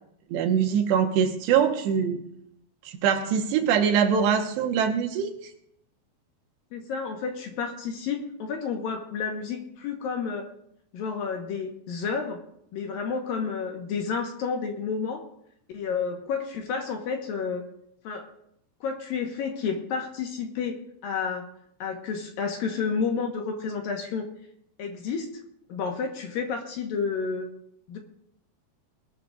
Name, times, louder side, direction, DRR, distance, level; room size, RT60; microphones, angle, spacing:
voice 1, 0.3-2.2 2.8-5.5, right 7 dB, 85° right, 4 dB, 3.4 m, -23 dB
voice 2, 6.7-10.5 10.9-12.4 12.7-15.2 15.7-17.6 18.0-18.3 18.8-20.8 21.0-21.5 21.8-24.3 24.8-25.3 25.7-27.5 27.9-28.0, left 5 dB, 65° left, 3 dB, 2.7 m, -30 dB
20.5 x 12.5 x 2.5 m, 0.73 s
omnidirectional pair, 4.9 m